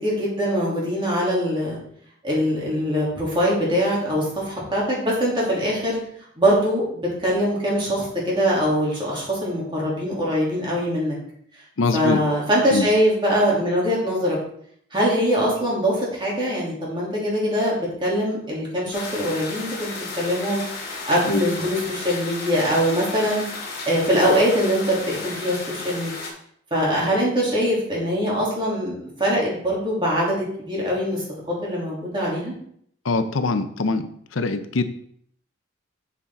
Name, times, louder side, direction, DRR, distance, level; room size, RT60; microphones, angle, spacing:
voice 1, 0.0-1.8 2.2-6.0 6.4-11.2 11.9-14.4 14.9-20.6 21.1-23.4 23.9-26.1 26.7-31.2 31.6-32.5, equal, 25° right, -5 dB, 2.9 m, -22 dB
voice 2, 11.8-12.2 12.7-12.9 21.3-21.4 33.0-34.8, left 3 dB, 85° left, 10 dB, 0.7 m, -23 dB
sound 1, 18.9-26.3, left 3 dB, 50° left, 2.5 m, -34 dB
7.3 x 6.9 x 3.7 m, 0.65 s
head